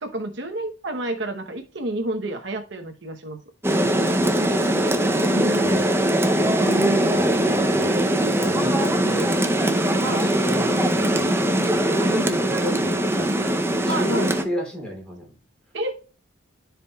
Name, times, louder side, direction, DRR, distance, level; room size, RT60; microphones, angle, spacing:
voice 1, 0.0-3.4 5.3-5.8 6.6-7.5 10.0-10.3 12.1-12.3 13.9-14.3 15.7-15.9, right 1 dB, 65° right, 4 dB, 0.9 m, -29 dB
Rain, 3.6-14.4, right 1 dB, 10° right, 0.6 m, -21 dB
voice 2, 3.7-4.3 5.6-5.9 7.1-9.4 10.0-13.4 13.8-15.3, equal, 5° left, -2 dB, 2.8 m, -33 dB
13.0 x 4.9 x 2.3 m, 0.36 s
head